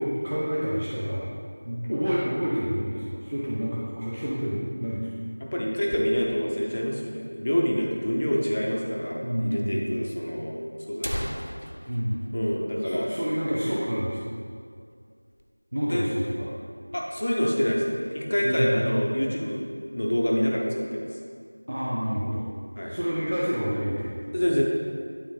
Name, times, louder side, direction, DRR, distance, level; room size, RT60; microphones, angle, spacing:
voice 1, 0.0-1.4 1.6-5.1 9.2-9.9 11.9-12.2 12.8-14.3 15.7-16.5 18.4-18.8 21.7-22.5 22.9-24.3, equal, 30° right, -7 dB, 0.6 m, -28 dB
sound 1, 4.8-6.6 7.0-7.1 7.3-7.4 8.1-8.2 9.1-9.2 9.5-9.6 10.4-10.5 10.8-13.4 13.7-13.9 14.3-14.5 14.9-15.5, equal, 90° left, 0.7 m, -38 dB
voice 2, 5.5-10.6 10.9-11.3 12.3-13.1 15.9-16.1 16.9-19.6 19.9-21.0 22.8-22.9 24.3-24.6, equal, 15° left, -2 dB, 0.4 m, -26 dB
8.9 x 4.1 x 4.3 m, 2.2 s
figure-of-eight pair, 180°, 0 cm